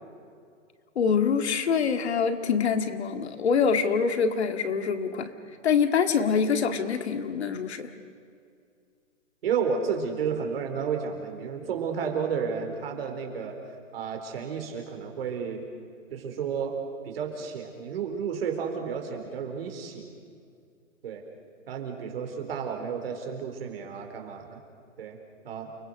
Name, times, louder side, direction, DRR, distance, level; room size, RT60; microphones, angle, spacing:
voice 1, 1.0-5.3 5.6-7.9, left 6 dB, 55° left, 8 dB, 2.1 m, -25 dB
voice 2, 9.4-13.6 13.9-15.6 16.1-16.8 17.0-20.1 21.0-21.2 21.7-24.6 25.0-25.2 25.4-25.7, right 6 dB, 50° right, 3 dB, 4.3 m, -32 dB
29.5 x 21.0 x 6.6 m, 2.3 s
hypercardioid pair, 165°, 39 cm